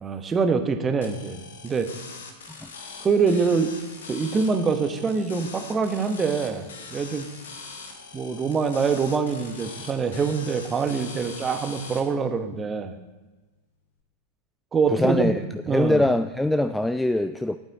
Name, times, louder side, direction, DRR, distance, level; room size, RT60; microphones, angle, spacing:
voice 1, 0.0-1.9 3.0-3.7 4.1-7.3 8.1-12.9 14.7-15.3 15.7-16.0, right 5 dB, 20° right, 7 dB, 1.1 m, -24 dB
sound 1, 1.0-12.0, left 4 dB, 65° left, 1.5 m, -42 dB
voice 2, 14.9-17.6, left 1 dB, 5° left, 11 dB, 0.3 m, -23 dB
12.0 x 8.9 x 4.1 m, 1.2 s
figure-of-eight pair, 90°, 0 cm